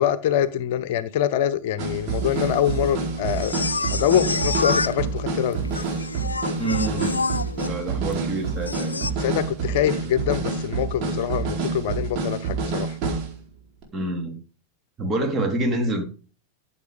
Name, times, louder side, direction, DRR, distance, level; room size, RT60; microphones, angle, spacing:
voice 1, 0.0-3.5 3.9-5.6 9.2-13.0, left 10 dB, 50° left, 0.9 m, -24 dB
sound 1, 1.8-13.4 13.8-13.9, right 5 dB, 40° right, 4.3 m, -28 dB
sound 2, 2.2-9.1, left 3 dB, 80° left, 0.6 m, -30 dB
voice 2, 6.6-7.2 7.7-9.1 13.9-14.4 15.0-16.0, right 2 dB, 20° right, 3.3 m, -27 dB
14.5 x 7.5 x 5.2 m
figure-of-eight pair, 90°, 0 cm